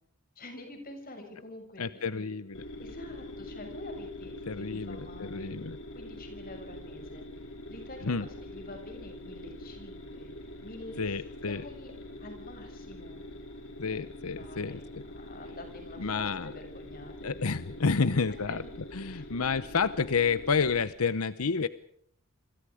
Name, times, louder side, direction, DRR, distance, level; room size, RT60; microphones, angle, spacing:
voice 1, 0.4-2.3 2.8-5.5 5.9-7.3 7.7-10.3 10.6-11.1 11.5-11.9 12.2-13.2 14.4-17.4 18.3-18.7 19.1-19.3, left 2 dB, 40° left, 5 dB, 6.9 m, -47 dB
voice 2, 1.8-2.6 4.5-5.8 8.0-8.3 11.0-11.6 13.8-15.0 16.0-16.5 17.2-18.6 18.9-21.7, left 5 dB, 85° left, 14 dB, 0.9 m, -30 dB
sound 1, 2.5-20.8, left 1 dB, 60° left, 4.7 m, -44 dB
28.0 x 26.0 x 5.0 m, 0.67 s
head